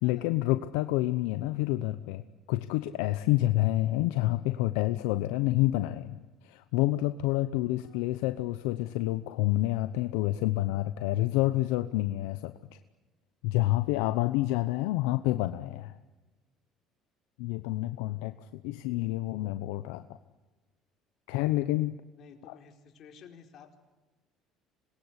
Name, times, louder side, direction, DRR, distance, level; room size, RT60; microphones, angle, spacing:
voice 1, 0.0-2.2 2.5-6.2 6.4-12.5 13.4-16.0 17.4-20.1 21.3-22.0, left 17 dB, 85° left, 10 dB, 0.9 m, -28 dB
voice 2, 22.2-23.8, left 7 dB, 55° left, 3 dB, 4.6 m, -53 dB
26.0 x 21.0 x 8.3 m, 1.2 s
supercardioid pair, 90°, 0 cm